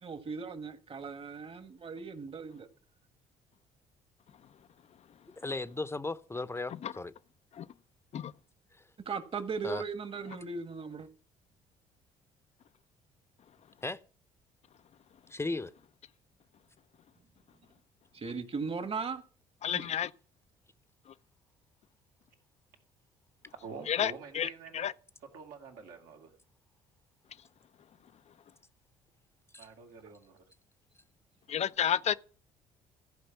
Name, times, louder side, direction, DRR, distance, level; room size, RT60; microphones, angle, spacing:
voice 1, 0.0-2.7 9.1-11.1 18.1-19.2 19.7-19.8, right 5 dB, 40° right, 1.8 m, -38 dB
voice 2, 5.4-7.1 8.7-8.8 9.6-9.8 13.8-14.0 15.3-15.7 29.5-29.7, left 3 dB, 15° left, 0.9 m, -36 dB
voice 3, 19.6-20.1 23.9-24.9 31.5-32.1, left 9 dB, 50° left, 0.6 m, -31 dB
voice 4, 23.6-24.9 25.3-26.3 29.6-30.4, right 5 dB, 70° right, 2.6 m, -47 dB
14.5 x 5.1 x 7.2 m
hypercardioid pair, 55°, 15 cm